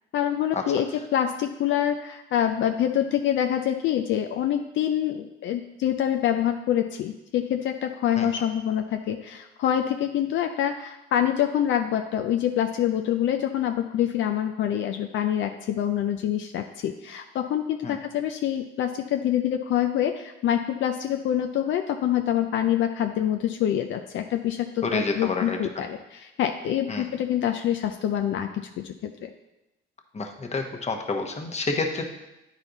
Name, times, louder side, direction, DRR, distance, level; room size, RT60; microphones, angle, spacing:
voice 1, 0.1-29.3, left 10 dB, 75° left, 6 dB, 0.5 m, -26 dB
voice 2, 24.8-25.8 26.9-27.0 30.1-32.0, left 3 dB, 35° left, 4 dB, 1.1 m, -29 dB
9.8 x 4.2 x 3.9 m, 0.95 s
cardioid pair, 90°, 20 cm